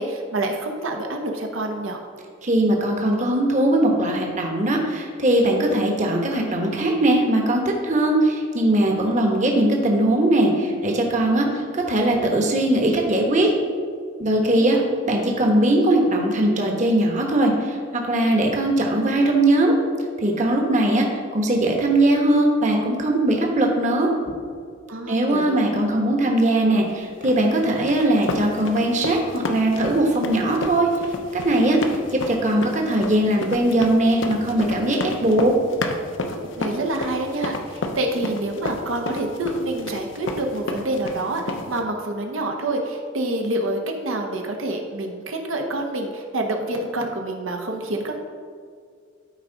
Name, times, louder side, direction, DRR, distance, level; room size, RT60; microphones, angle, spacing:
voice 1, 0.0-2.0 14.5-14.8 24.9-25.6 36.6-48.1, right 1 dB, 80° right, 2 dB, 1.0 m, -27 dB
voice 2, 2.4-13.5 14.2-14.8 15.1-19.7 20.2-21.1 21.3-24.1 25.1-30.9 31.3-31.8 32.1-35.5, right 1 dB, 35° right, 1 dB, 1.1 m, -20 dB
sound 1, 27.2-41.8, left 2 dB, 70° left, 0.7 m, -31 dB
12.5 x 4.9 x 3.9 m, 2.1 s
head